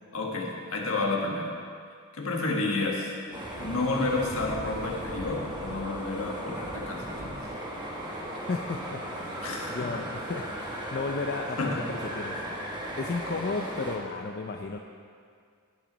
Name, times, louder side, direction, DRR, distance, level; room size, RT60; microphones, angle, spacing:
voice 1, 0.1-1.5 2.1-3.1 3.6-7.4 9.4-9.9 11.6-11.8, left 2 dB, 70° left, -1 dB, 1.6 m, -30 dB
sound 1, 3.3-14.0, right 1 dB, 20° right, 1.3 m, -37 dB
voice 2, 8.5-11.8 12.1-12.4 13.0-14.8, left 3 dB, 45° left, 3 dB, 0.4 m, -34 dB
17.0 x 6.1 x 4.0 m, 2.2 s
head